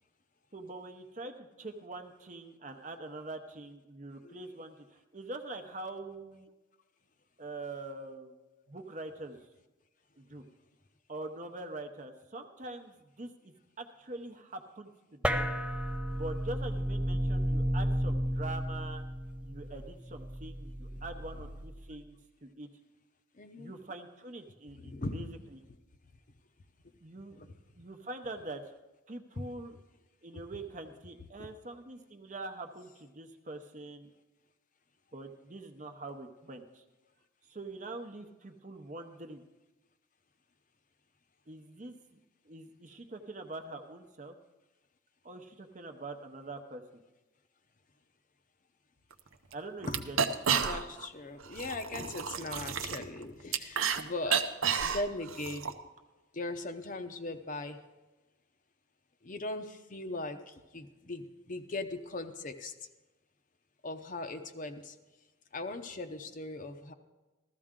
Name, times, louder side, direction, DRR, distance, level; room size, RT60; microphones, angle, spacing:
voice 1, 0.5-6.5 7.4-8.3 8.7-9.4 10.2-10.4 11.1-15.5 16.1-19.0 19.4-22.2 22.4-22.7 23.6-25.3 27.0-28.6 29.1-29.8 30.2-34.1 35.1-36.8 37.5-39.4 41.5-42.2 42.4-44.3 45.2-47.0 49.5-50.2, right 2 dB, 35° right, 6 dB, 0.8 m, -44 dB
sound 1, 15.2-22.0, equal, 5° right, 0.3 m, -33 dB
voice 2, 23.4-23.7 24.8-25.3 27.4-27.5 29.4-29.5 31.4-31.5 49.9-50.1 50.6-54.5 54.8-55.7 56.3-57.8 59.2-62.7 63.8-65.0 65.5-66.9, left 2 dB, 40° left, 7 dB, 0.7 m, -39 dB
sound 2, 49.1-49.2 49.5-49.6 49.8-51.1 51.4-54.0 54.3-55.7, right 7 dB, 90° right, 0.7 m, -31 dB
14.5 x 13.5 x 3.7 m, 1.1 s
head